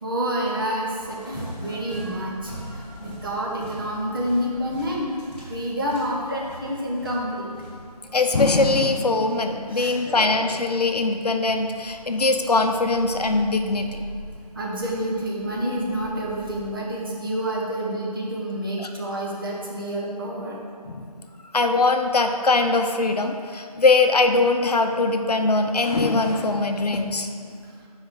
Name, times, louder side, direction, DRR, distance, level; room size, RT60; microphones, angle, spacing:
voice 1, 0.0-5.1 5.5-7.5 9.7-10.4 14.5-20.6 27.5-27.6, equal, 35° right, -4 dB, 1.1 m, -28 dB
sound 1, 1.0-16.7, right 1 dB, 15° left, 1.5 m, -42 dB
voice 2, 8.1-14.0 18.8-18.9 20.9-21.0 21.5-27.3, left 3 dB, 75° left, 5 dB, 0.6 m, -21 dB
6.2 x 4.7 x 4.7 m, 2.2 s
figure-of-eight pair, 165°, 21 cm